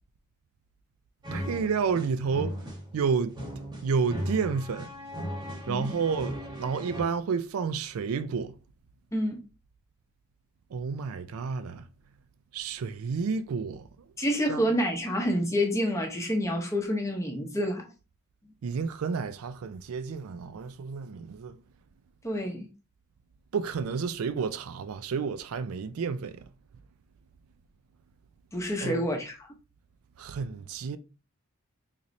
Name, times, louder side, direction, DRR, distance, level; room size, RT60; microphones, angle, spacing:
sound 1, 1.2-7.0, equal, 20° right, 1.0 m, -37 dB
voice 1, 1.3-2.6 2.9-3.4 3.8-4.9 5.7-8.6 10.7-11.9 12.5-13.9 14.5-14.7 18.6-21.6 23.5-26.4 28.8-29.1 30.2-31.0, right 5 dB, 80° right, 0.4 m, -30 dB
voice 2, 9.1-9.4 14.2-17.8 22.2-22.7 28.5-29.5, equal, 15° left, 0.6 m, -28 dB
4.1 x 3.0 x 2.6 m
head